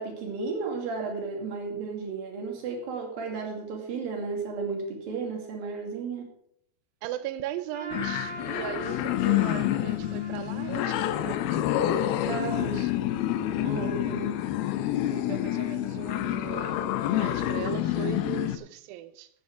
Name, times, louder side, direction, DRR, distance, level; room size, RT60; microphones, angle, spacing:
voice 1, 0.0-6.3 12.3-12.8 13.6-14.3, right 4 dB, 65° right, 4.1 m, -33 dB
voice 2, 7.0-11.6 12.3-12.9 15.1-19.3, right 13 dB, 80° right, 2.1 m, -38 dB
Trumpet, 7.7-12.8, right 1 dB, 10° left, 2.4 m, -43 dB
sound 1, 7.9-18.6, left 12 dB, 80° left, 2.6 m, -28 dB
11.5 x 8.9 x 4.8 m
omnidirectional pair, 4.5 m